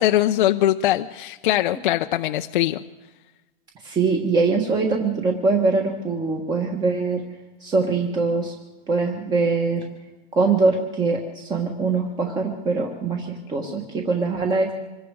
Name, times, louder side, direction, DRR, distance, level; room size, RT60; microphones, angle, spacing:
voice 1, 0.0-2.8, left 13 dB, 50° left, 6 dB, 0.7 m, -21 dB
voice 2, 3.8-7.2 7.6-8.5 8.9-9.8 10.3-14.7, right 4 dB, 15° right, 2 dB, 1.3 m, -22 dB
25.5 x 21.0 x 4.8 m, 1.2 s
hypercardioid pair, 165°, 32 cm